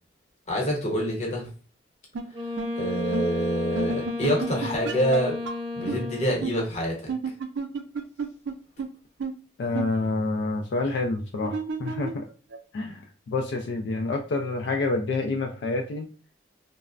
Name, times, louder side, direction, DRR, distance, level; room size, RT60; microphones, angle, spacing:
voice 1, 0.5-1.5 2.8-5.4 5.7-7.1, equal, 35° left, -2 dB, 0.9 m, -26 dB
sound 1, 2.1-2.2 2.6-2.7 3.1-3.2 3.7-5.2 5.4-5.5 5.9-6.0 6.4-6.5 7.1-8.5 8.8-8.9 9.2-9.3 9.7-9.9 11.4-12.8, right 4 dB, 80° right, 0.4 m, -30 dB
Wind instrument woodwind instrument, 2.3-6.7, left 2 dB, 25° right, 0.5 m, -33 dB
voice 2, 9.6-12.2 12.7-16.1, left 3 dB, 75° left, 3 dB, 0.3 m, -28 dB
3.1 x 2.0 x 2.4 m, 0.36 s
head